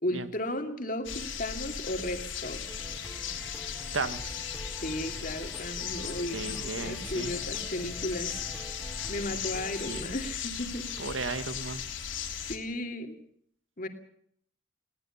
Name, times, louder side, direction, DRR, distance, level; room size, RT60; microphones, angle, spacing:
voice 1, 0.0-2.7 4.8-8.4 9.1-10.9 12.5-13.2 13.8-13.9, left 1 dB, 45° left, 5 dB, 2.6 m, -35 dB
sound 1, 1.0-12.6, left 7 dB, 85° left, 3.5 m, -37 dB
sound 2, 2.7-10.0, equal, ahead, 3.2 m, -47 dB
voice 2, 3.9-4.3 6.3-7.3 9.9-10.1 11.0-11.8, right 3 dB, 90° right, 11 dB, 1.6 m, -35 dB
21.0 x 18.0 x 7.2 m, 0.64 s
head